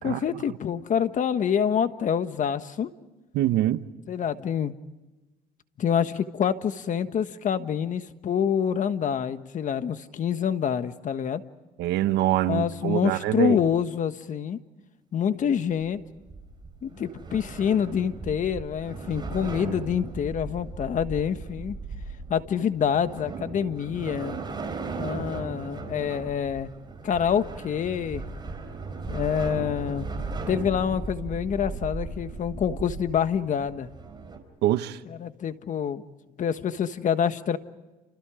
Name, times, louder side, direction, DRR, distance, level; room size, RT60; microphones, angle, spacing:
voice 1, 0.0-2.9 4.1-4.7 5.8-11.4 12.5-14.6 15.1-16.0 16.8-21.8 22.3-24.4 25.0-26.7 27.0-28.2 29.1-30.1 30.5-33.9 35.2-36.0 36.4-37.6, left 8 dB, 50° left, 1.4 m, -26 dB
voice 2, 3.3-3.8 11.8-13.6 34.6-35.0, right 13 dB, 80° right, 1.1 m, -24 dB
sound 1, 15.7-34.4, right 3 dB, 25° right, 4.5 m, -37 dB
29.5 x 28.5 x 5.0 m
cardioid pair, 110°, 17 cm